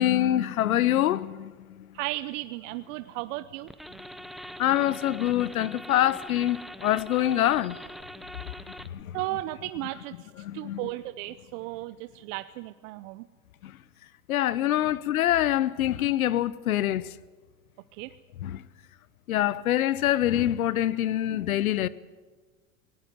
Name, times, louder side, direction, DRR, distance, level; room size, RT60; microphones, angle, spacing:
voice 1, 0.0-1.9 4.6-7.8 8.8-9.2 10.4-10.8 13.6-13.7 14.3-17.1 18.4-18.6 19.3-21.9, left 12 dB, 90° left, 0.9 m, -25 dB
voice 2, 1.9-3.7 9.1-13.3 17.9-18.1, right 18 dB, 65° right, 0.8 m, -35 dB
sound 1, 3.7-9.0, equal, ahead, 0.9 m, -43 dB
19.0 x 18.5 x 9.3 m
hypercardioid pair, 90°, 41 cm